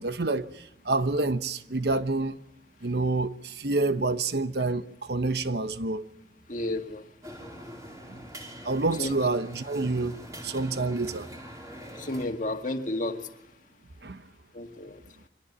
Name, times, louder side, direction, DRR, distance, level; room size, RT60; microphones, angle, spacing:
voice 1, 0.0-2.4 2.8-6.1 8.1-8.2 8.6-11.3 14.0-14.2, right 3 dB, 60° right, 1.0 m, -28 dB
voice 2, 6.5-7.0 9.0-9.1 12.0-13.2 14.5-15.0, left 1 dB, 45° left, 1.9 m, -31 dB
sound 1, 7.2-12.3, equal, 20° right, 4.2 m, -43 dB
24.5 x 17.5 x 10.0 m
head